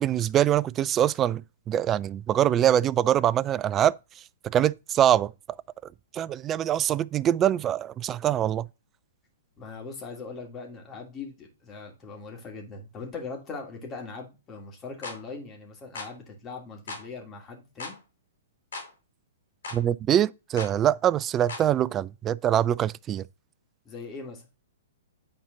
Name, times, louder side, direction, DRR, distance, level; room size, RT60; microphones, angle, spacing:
voice 1, 0.0-3.9 4.4-5.3 6.1-8.7 19.7-23.2, right 11 dB, 25° right, 0.3 m, -24 dB
voice 2, 9.6-18.0 23.9-24.4, left 4 dB, 25° left, 2.5 m, -40 dB
sound 1, 15.0-15.2 16.0-16.1 16.9-17.1 17.8-18.0 18.7-18.9 19.6-19.8 20.6-20.8 21.5-21.7, left 3 dB, 75° left, 3.2 m, -37 dB
9.0 x 4.3 x 3.9 m
hypercardioid pair, 125°, 0 cm